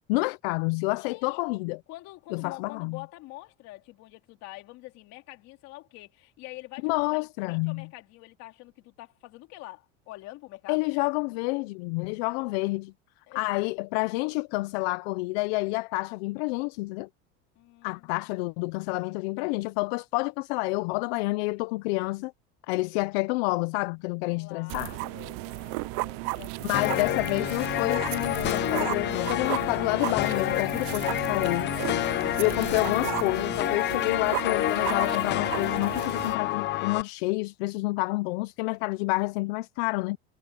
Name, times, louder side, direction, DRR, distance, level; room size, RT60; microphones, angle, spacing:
voice 1, 0.1-1.8 2.3-3.0 6.8-7.9 10.7-12.9 13.3-17.1 17.8-22.3 22.7-24.9 26.6-31.8 32.4-40.2, left 25 dB, 80° left, 0.6 m, -29 dB
voice 2, 1.0-1.4 1.9-10.8 13.3-13.4 17.5-18.2 22.9-23.1 24.2-27.2 38.8-39.3, left 19 dB, 55° left, 3.1 m, -46 dB
sound 1, 24.7-36.3, right 26 dB, 60° right, 0.5 m, -35 dB
sound 2, 26.7-37.0, left 14 dB, 35° left, 0.8 m, -29 dB
cardioid pair, 150°, 31 cm